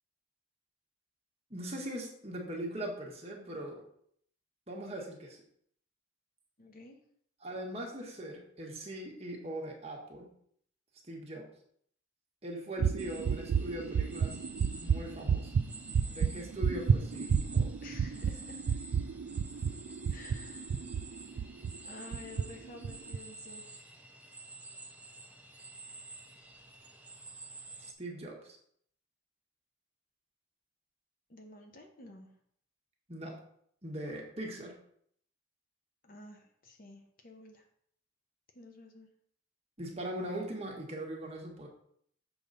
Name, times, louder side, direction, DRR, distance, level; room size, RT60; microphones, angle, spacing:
voice 1, 1.5-3.8 4.7-5.4 7.4-10.3 11.1-11.4 12.4-14.4 14.8-15.5 16.1-17.7 27.8-28.6 33.1-33.4 33.8-34.7 39.8-41.7, right 1 dB, 30° right, -1 dB, 1.4 m, -40 dB
voice 2, 6.6-7.0 17.8-18.8 20.1-20.7 21.8-23.7 31.3-32.3 36.0-37.6 38.5-39.1, left 2 dB, 45° left, 3 dB, 0.8 m, -51 dB
sound 1, 12.8-21.8 22.1-22.5 22.8-23.2, right 6 dB, 75° right, 0.3 m, -31 dB
sound 2, 13.0-27.9, right 3 dB, 5° right, 0.6 m, -50 dB
6.9 x 3.9 x 5.4 m, 0.66 s
head